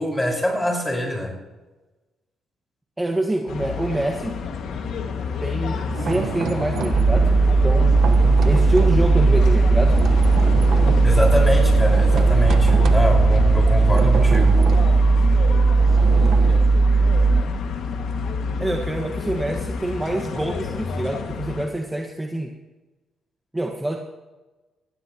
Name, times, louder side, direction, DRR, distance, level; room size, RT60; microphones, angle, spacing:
voice 1, 0.0-1.3 11.0-14.6, left 1 dB, 10° left, 0 dB, 4.9 m, -24 dB
voice 2, 3.0-4.4 5.4-7.3 7.6-8.0 8.4-10.0 18.6-22.5 23.5-24.0, right 1 dB, 10° right, 2 dB, 1.5 m, -26 dB
sound 1, 3.5-21.7, left 5 dB, 75° left, 1.9 m, -29 dB
sound 2, 5.8-9.1 9.4-16.6, right 7 dB, 65° right, 1.1 m, -30 dB
sound 3, 6.9-17.4, right 3 dB, 35° right, 3.3 m, -16 dB
20.0 x 15.5 x 3.0 m, 1.2 s
cardioid pair, 90°, 0 cm